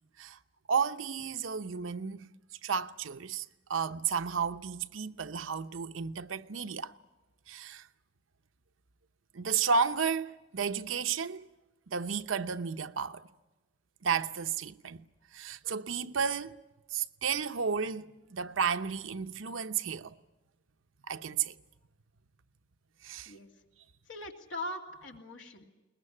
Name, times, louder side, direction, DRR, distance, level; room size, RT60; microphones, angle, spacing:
voice 1, 0.7-2.3 2.6-6.9 7.5-7.8 9.3-11.5 11.9-13.2 14.0-15.0 15.3-16.5 16.9-20.1 21.1-21.5 23.0-23.3, right 6 dB, 80° right, 0.8 m, -32 dB
voice 2, 24.1-25.7, left 1 dB, 70° left, 2.9 m, -41 dB
22.0 x 20.5 x 9.9 m
head